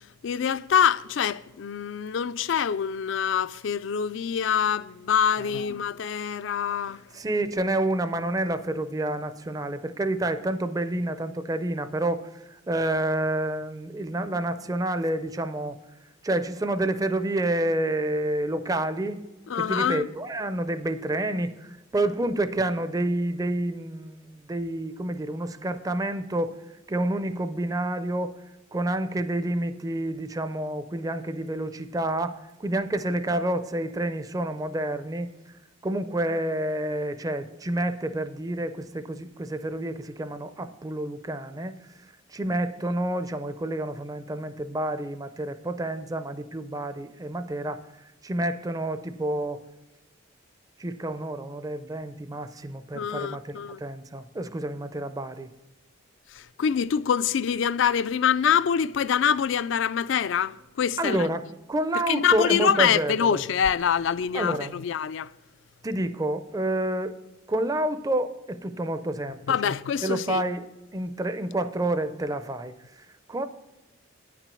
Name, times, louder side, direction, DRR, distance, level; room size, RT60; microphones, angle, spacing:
voice 1, 0.2-7.0 19.5-20.1 52.9-53.8 56.3-61.3 62.1-65.3 69.5-70.4, left 8 dB, 65° left, 0.3 m, -25 dB
voice 2, 7.1-15.8 16.2-19.2 19.5-26.6 26.9-28.3 28.7-35.3 35.8-41.7 42.3-47.8 48.2-49.6 50.8-55.5 61.0-63.4 64.3-64.7 65.8-67.2 67.5-69.8 70.0-70.6 70.9-73.5, right 1 dB, 20° right, 0.4 m, -29 dB
9.9 x 6.0 x 6.9 m
head